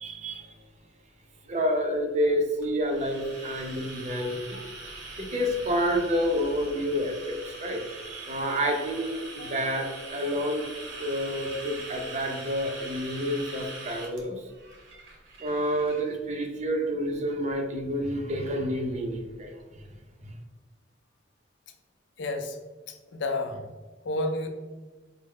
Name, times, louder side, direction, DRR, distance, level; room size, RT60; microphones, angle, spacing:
voice 1, 0.0-0.5 1.5-4.6 5.2-10.7 11.0-14.4 15.4-19.5, equal, 35° right, 3 dB, 0.5 m, -29 dB
sound 1, 2.6-16.0, right 2 dB, 80° right, 0.9 m, -42 dB
voice 2, 9.4-9.7 22.2-22.6 22.9-23.7 24.0-24.5, left 2 dB, 70° left, 5 dB, 0.5 m, -31 dB
4.4 x 2.0 x 3.5 m, 1.3 s
head